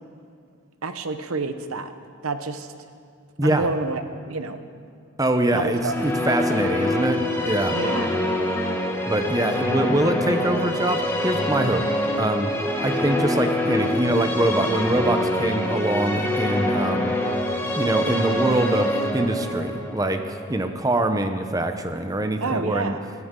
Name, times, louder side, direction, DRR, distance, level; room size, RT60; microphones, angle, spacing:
voice 1, 0.8-1.9 2.2-2.7 3.4-4.6 5.5-6.2 7.7-8.2 22.4-23.1, right 3 dB, 85° right, 9 dB, 0.9 m, -29 dB
voice 2, 5.2-7.8 9.1-11.8 12.2-12.5 12.8-17.2 17.8-20.2 20.5-23.0, right 1 dB, 15° right, 7 dB, 0.8 m, -24 dB
sound 1, 5.5-21.6, left 1 dB, 10° left, 1.6 m, -25 dB
22.0 x 14.0 x 3.8 m, 2.3 s
head